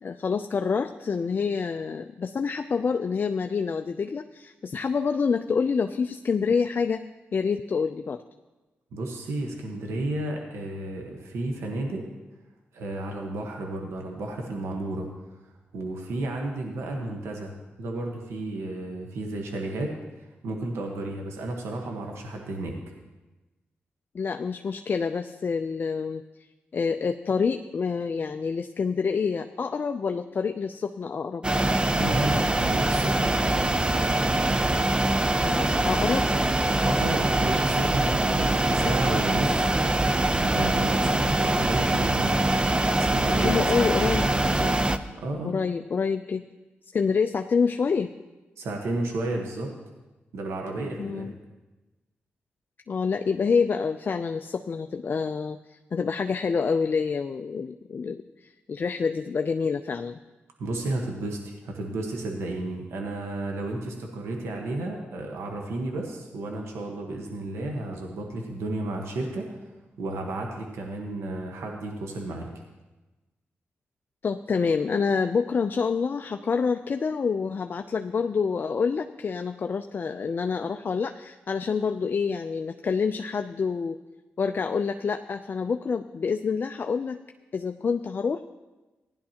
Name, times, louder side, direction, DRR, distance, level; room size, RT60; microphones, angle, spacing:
voice 1, 0.0-7.0 7.3-8.2 24.1-26.2 26.7-31.5 35.4-36.3 43.4-44.3 44.6-44.8 45.4-46.4 46.9-48.1 51.0-51.3 52.9-60.2 74.2-84.0 84.4-87.2 87.5-88.5, left 5 dB, 50° left, 6 dB, 0.4 m, -27 dB
voice 2, 8.9-12.0 12.7-15.1 15.7-17.5 17.8-19.9 20.4-22.8 31.9-33.9 36.8-39.7 40.4-42.4 43.0-44.5 45.1-45.5 48.6-49.7 50.3-51.3 60.6-69.6 70.0-72.5, right 2 dB, 85° right, 1 dB, 1.3 m, -32 dB
sound 1, 31.4-45.0, right 1 dB, 20° right, 0.6 m, -23 dB
16.0 x 10.5 x 2.9 m, 1.1 s
cardioid pair, 60°, 4 cm